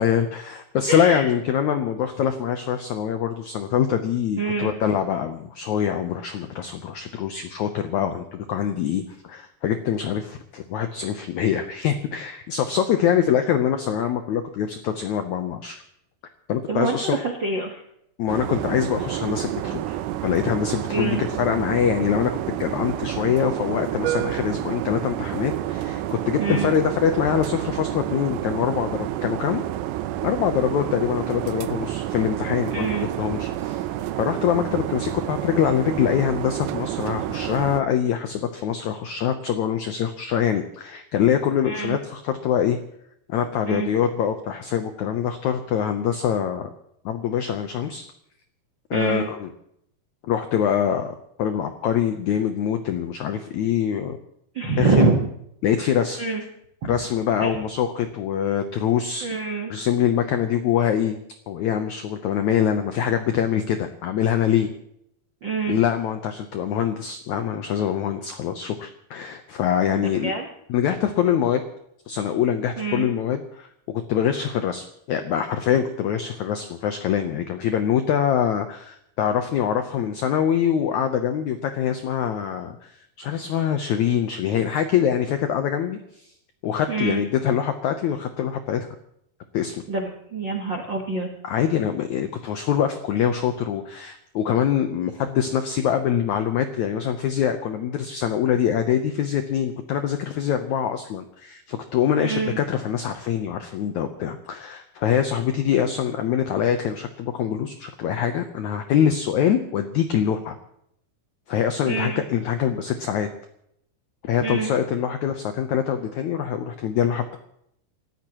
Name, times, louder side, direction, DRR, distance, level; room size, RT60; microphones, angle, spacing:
voice 1, 0.0-15.8 16.5-17.2 18.2-20.0 20.2-29.6 30.2-32.9 33.2-33.8 34.2-42.8 43.3-46.7 47.1-48.0 48.9-49.5 50.2-54.2 54.8-55.1 55.6-56.2 56.9-59.3 59.7-61.2 61.5-64.7 65.7-70.3 70.7-71.6 72.1-86.3 86.6-88.9 89.5-89.8 91.4-110.6 111.5-113.3 114.2-117.4, left 9 dB, 80° left, 7 dB, 1.7 m, -24 dB
voice 2, 0.9-1.3 4.4-4.7 16.7-17.8 20.9-21.2 26.4-26.7 32.7-33.1 41.6-42.0 43.6-43.9 48.9-49.3 54.5-55.3 56.2-56.4 56.8-57.0 57.4-57.5 59.2-59.7 65.4-65.8 69.9-70.5 72.8-73.1 86.9-87.2 89.9-91.3 102.2-102.6 111.8-112.2 114.4-114.7, right 4 dB, 60° right, 1 dB, 1.1 m, -25 dB
sound 1, 18.3-37.8, right 13 dB, 90° right, 1.8 m, -29 dB
28.5 x 14.5 x 3.0 m, 0.73 s
omnidirectional pair, 4.5 m